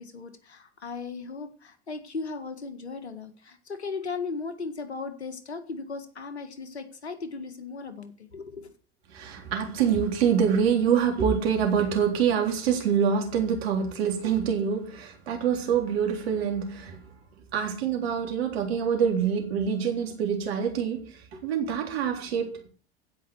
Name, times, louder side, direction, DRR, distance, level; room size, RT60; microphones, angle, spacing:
voice 1, 0.0-8.7, left 4 dB, 90° left, 1.8 m, -37 dB
voice 2, 9.1-17.0 17.5-22.7, right 7 dB, 70° right, 3.8 m, -26 dB
15.5 x 5.8 x 8.0 m
hypercardioid pair, 85°, 32 cm